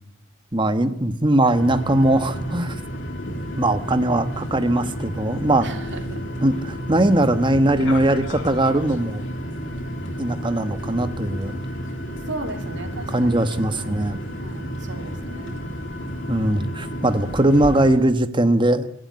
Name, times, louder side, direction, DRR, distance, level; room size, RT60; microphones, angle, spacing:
voice 1, 0.5-2.8 3.6-5.7 6.4-9.2 10.2-11.6 13.1-14.2 16.3-18.9, right 1 dB, 25° right, 9 dB, 1.4 m, -20 dB
sound 1, 1.5-18.0, equal, 60° left, 3.5 m, -31 dB
voice 2, 5.6-6.2 10.8-11.0 12.3-13.5 13.7-14.0 14.4-15.6, right 2 dB, 55° right, 5 dB, 3.2 m, -36 dB
27.5 x 12.0 x 9.6 m, 0.83 s
head